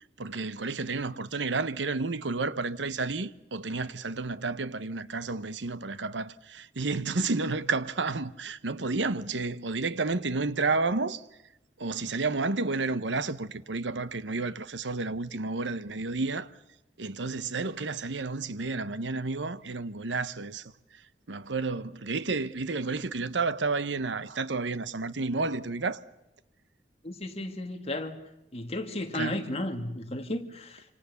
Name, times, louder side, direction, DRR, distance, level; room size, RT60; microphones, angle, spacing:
voice 1, 0.0-11.3 11.8-16.5 17.0-21.0 21.3-26.0 29.1-29.4, right 3 dB, 80° right, 1.0 m, -31 dB
voice 2, 27.0-28.2 28.5-30.9, left 1 dB, 35° left, 2.3 m, -34 dB
27.0 x 27.0 x 7.1 m
head